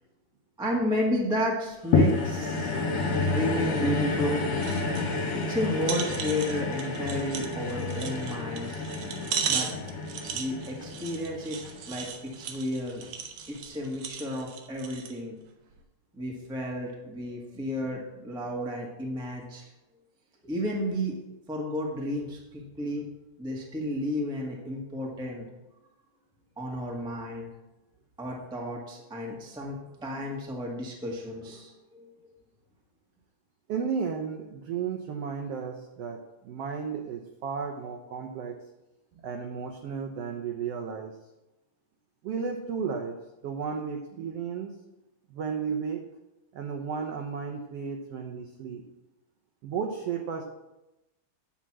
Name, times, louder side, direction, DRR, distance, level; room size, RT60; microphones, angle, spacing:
voice 1, 0.6-2.8 3.2-4.5 5.3-8.8 9.5-9.7 10.3-11.6 11.9-13.0 13.5-15.4 16.1-19.6 20.4-21.2 21.5-23.1 23.4-25.5 26.6-27.5 28.2-32.1, equal, 5° right, -2 dB, 0.3 m, -32 dB
sound 1, 1.9-12.4 13.0-13.1, left 3 dB, 60° left, 2.8 m, -29 dB
sound 2, 4.6-5.1 5.4-5.5 5.8-15.2 15.7-15.8, right 7 dB, 70° right, 1.8 m, -36 dB
voice 2, 33.7-38.6 39.2-41.2 42.2-44.7 45.3-46.0 46.5-48.8 49.6-50.4, right 6 dB, 85° right, 3 dB, 1.3 m, -33 dB
10.0 x 4.7 x 7.4 m, 0.99 s
omnidirectional pair, 3.7 m